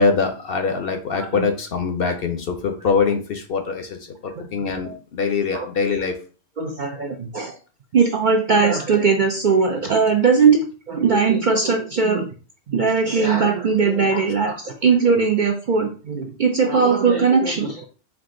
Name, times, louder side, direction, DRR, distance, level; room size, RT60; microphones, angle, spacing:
voice 1, 0.0-6.1 14.1-14.3, left 5 dB, 60° left, 5 dB, 0.7 m, -23 dB
voice 2, 6.6-7.5 7.9-12.3 12.7-17.8, right 5 dB, 55° right, 2 dB, 0.5 m, -19 dB
4.6 x 2.5 x 3.7 m, 0.37 s
omnidirectional pair, 1.3 m